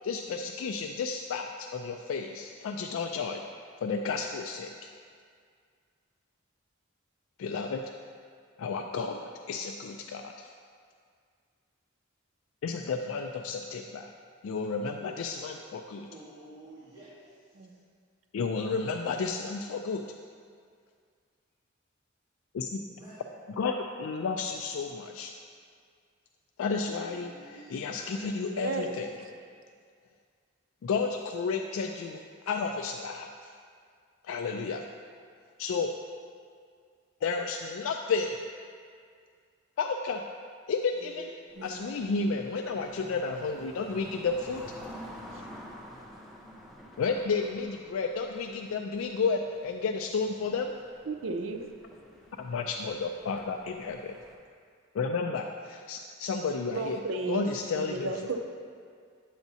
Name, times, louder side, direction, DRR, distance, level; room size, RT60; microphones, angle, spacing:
voice 1, 0.0-3.4 3.8-4.9 7.4-7.8 8.6-10.5 12.6-14.1 14.4-16.1 18.3-20.1 22.5-22.8 23.6-25.3 26.6-29.1 30.8-33.5 34.2-34.8 35.6-35.9 37.2-38.4 39.8-40.2 40.7-41.3 41.6-44.6 47.0-50.8 52.4-54.2 54.9-57.0 57.3-58.1, left 4 dB, 85° left, 4 dB, 0.3 m, -32 dB
voice 2, 16.1-17.8 22.9-23.3 26.9-28.6 40.9-42.0 52.0-52.2 56.5-57.0, right 1 dB, 20° right, -14 dB, 2.0 m, -51 dB
voice 3, 28.5-29.3 41.6-41.8 45.3-45.4 51.1-51.7 56.7-57.5 57.7-58.4, right 3 dB, 70° right, 5 dB, 0.6 m, -34 dB
sound 1, 41.5-54.4, equal, ahead, 0.8 m, -49 dB
9.1 x 7.0 x 2.7 m, 2.1 s
head